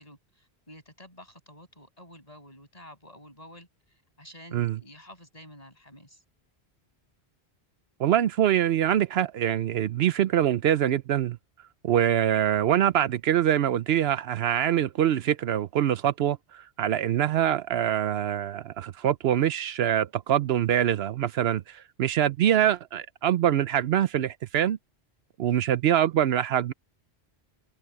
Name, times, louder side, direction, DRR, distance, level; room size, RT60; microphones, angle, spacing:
voice 1, 0.0-6.2, equal, 35° left, 6.7 m, -50 dB
voice 2, 8.0-11.4 11.8-24.8 25.4-26.7, right 10 dB, 75° right, 0.8 m, -24 dB
open air
omnidirectional pair, 1.1 m